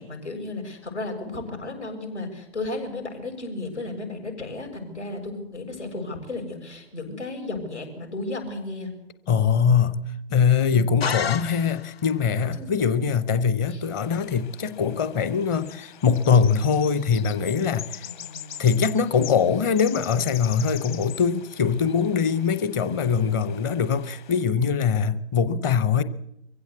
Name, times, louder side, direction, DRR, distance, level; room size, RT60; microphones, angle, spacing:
voice 1, 0.0-8.9 10.7-10.9 12.5-13.0 13.7-13.8 18.0-18.7, left 2 dB, 75° left, 7.0 m, -34 dB
voice 2, 9.3-18.1 18.6-26.0, left 6 dB, 15° left, 0.7 m, -22 dB
sound 1, 11.0-12.1, left 7 dB, 60° left, 1.2 m, -29 dB
sound 2, 13.9-24.4, left 10 dB, 45° left, 1.6 m, -43 dB
23.5 x 16.0 x 8.4 m
figure-of-eight pair, 125°, 34 cm